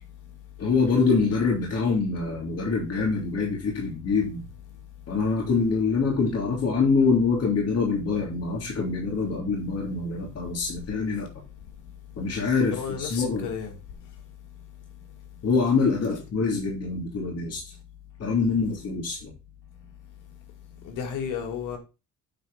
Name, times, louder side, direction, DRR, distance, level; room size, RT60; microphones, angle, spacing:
voice 1, 0.6-4.4 5.1-11.3 12.2-13.5 15.4-17.6 18.2-19.3, left 4 dB, 55° left, 3.1 m, -25 dB
voice 2, 12.7-13.7 16.0-16.2 20.8-21.8, left 7 dB, 90° left, 2.2 m, -32 dB
8.8 x 4.4 x 5.5 m
cardioid pair, 90°, 30 cm